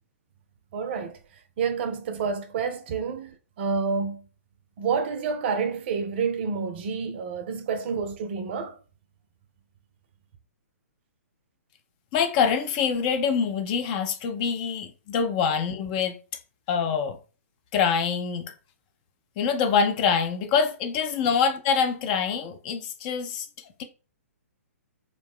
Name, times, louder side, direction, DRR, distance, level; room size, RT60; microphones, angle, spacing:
voice 1, 0.7-1.2 1.6-4.2 4.8-8.8, right 5 dB, 45° right, 0.4 m, -29 dB
voice 2, 12.1-16.1 16.7-17.2 17.7-18.5 19.4-23.5, left 6 dB, 35° left, 0.4 m, -25 dB
2.4 x 2.0 x 3.4 m
figure-of-eight pair, 120°, 8 cm